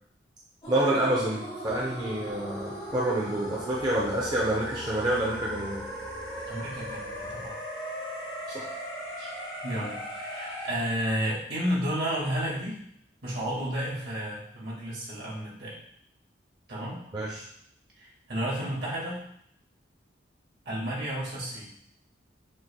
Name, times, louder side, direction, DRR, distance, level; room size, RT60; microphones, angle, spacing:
sound 1, 0.6-10.7, equal, 30° left, 1.2 m, -38 dB
voice 1, 0.7-5.8 8.5-8.6 9.2-9.3 17.1-17.4, right 1 dB, 25° right, -4 dB, 0.6 m, -28 dB
sound 2, 1.6-7.5, left 2 dB, 50° left, 1.1 m, -48 dB
voice 2, 6.5-7.6 9.6-12.8 13.2-15.8 16.7-17.0 18.0-19.2 20.7-21.7, equal, 60° right, -5 dB, 1.8 m, -32 dB
6.3 x 3.2 x 2.2 m, 0.69 s
head